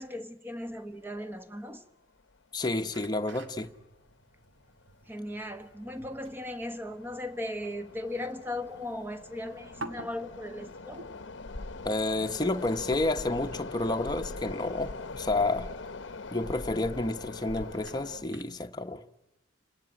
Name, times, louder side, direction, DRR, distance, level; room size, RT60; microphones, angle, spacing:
voice 1, 0.0-1.8 5.1-11.0, left 1 dB, 10° right, 1.1 m, -37 dB
sound 1, 1.3-1.4 1.7-1.8 2.5-2.8 3.0-3.2 3.8-4.1 4.6-18.2, left 3 dB, 70° left, 0.9 m, -43 dB
voice 2, 2.5-3.7 11.8-15.7 16.3-19.0, left 2 dB, 20° left, 1.0 m, -30 dB
sound 2, 2.6-18.7, right 2 dB, 70° right, 2.1 m, -52 dB
29.5 x 19.0 x 9.9 m
head